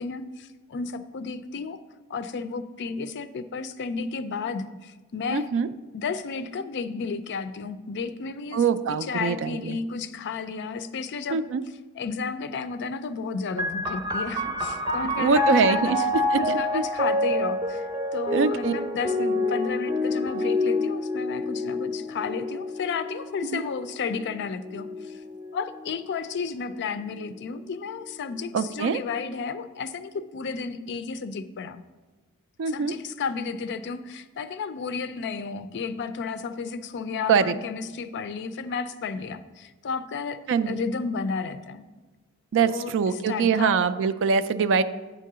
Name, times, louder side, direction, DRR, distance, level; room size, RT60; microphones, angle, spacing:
voice 1, 0.0-1.8 2.1-5.5 5.9-8.6 8.9-11.4 12.0-16.0 16.4-25.2 25.5-31.8 32.7-41.8 42.6-43.8, left 5 dB, 50° left, 12 dB, 0.4 m, -32 dB
voice 2, 5.3-5.7 8.5-9.8 11.3-11.6 15.2-16.0 16.3-16.8 18.3-18.7 23.5-23.6 28.5-29.0 32.6-32.9 37.3-37.5 40.5-40.8 42.5-44.8, right 5 dB, 55° right, 12 dB, 0.3 m, -23 dB
sound 1, 13.6-26.8 27.7-28.5, left 2 dB, 20° right, 0.6 m, -28 dB
9.1 x 3.7 x 6.7 m, 1.3 s
head